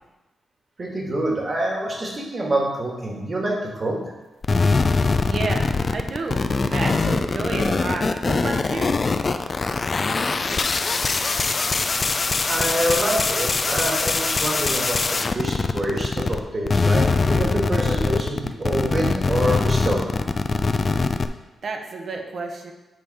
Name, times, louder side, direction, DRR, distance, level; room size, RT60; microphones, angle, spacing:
voice 1, 0.8-4.0 12.5-20.1, right 1 dB, 40° right, -1 dB, 1.8 m, -26 dB
sound 1, 4.4-16.4 16.7-21.3, left 4 dB, 40° left, 0.4 m, -22 dB
voice 2, 5.3-5.7 5.9-6.4 6.7-9.0 21.6-22.7, right 3 dB, 60° right, 3 dB, 1.0 m, -30 dB
8.2 x 3.5 x 4.9 m, 1.1 s
cardioid pair, 75°, 0 cm